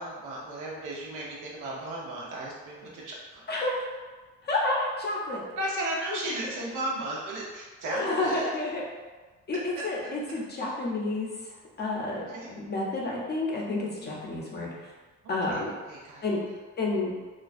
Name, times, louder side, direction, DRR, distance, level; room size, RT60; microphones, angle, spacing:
voice 1, 0.0-3.4 5.6-8.5 9.7-10.1 12.3-12.5 15.2-16.2, right 1 dB, 85° right, -4 dB, 0.7 m, -35 dB
voice 2, 3.5-3.8 4.4-5.4 7.9-8.8 9.5-9.6 9.8-14.9 15.3-15.7 16.2-16.4 16.8-17.1, left 2 dB, 35° left, -3 dB, 0.6 m, -30 dB
2.4 x 2.2 x 2.4 m, 1.3 s
cardioid pair, 90°, 30 cm